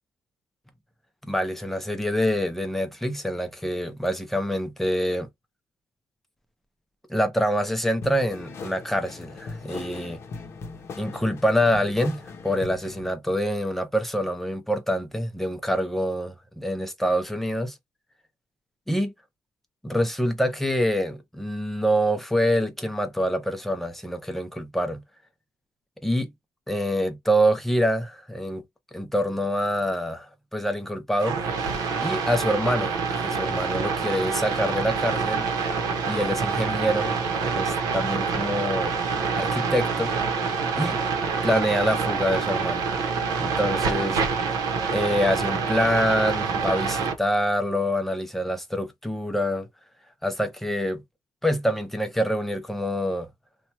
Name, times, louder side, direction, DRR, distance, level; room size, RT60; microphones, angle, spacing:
voice 1, 1.2-5.3 7.1-10.2 11.0-17.8 18.9-19.1 19.8-25.0 26.0-26.3 26.7-28.6 28.9-31.5 32.0-35.5 36.1-37.1 37.4-38.9 39.3-40.4 40.8-41.0 41.4-42.8 43.4-44.2 44.9-49.7 50.2-51.0 51.4-53.3, equal, 5° left, 0.5 m, -26 dB
sound 1, 8.0-13.1, left 4 dB, 40° left, 0.7 m, -39 dB
sound 2, 31.2-47.1, right 5 dB, 70° right, 0.8 m, -26 dB
2.9 x 2.2 x 4.2 m
cardioid pair, 180°, 7 cm